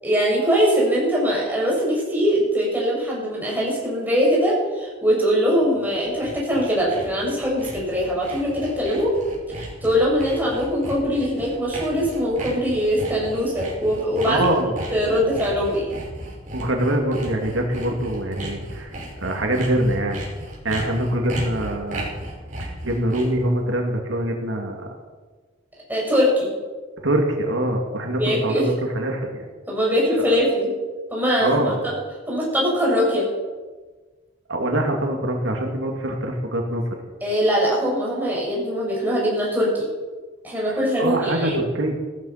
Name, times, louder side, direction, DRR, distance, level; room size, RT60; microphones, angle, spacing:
voice 1, 0.0-9.1 9.5-14.4 14.9-15.9 25.9-26.5 28.2-28.7 29.7-30.7 31.1-31.9 32.3-33.2 37.2-39.9 40.4-41.6, equal, 10° right, -5 dB, 6.4 m, -22 dB
Sawing, 5.6-23.5, right 1 dB, 40° right, 5.9 m, -35 dB
voice 2, 14.3-14.7 16.5-20.2 20.6-22.1 22.6-24.9 27.0-29.4 30.2-30.4 31.4-31.8 34.5-36.8 40.7-41.9, right 1 dB, 80° right, 2 dB, 2.5 m, -24 dB
16.5 x 14.0 x 5.9 m, 1.3 s
head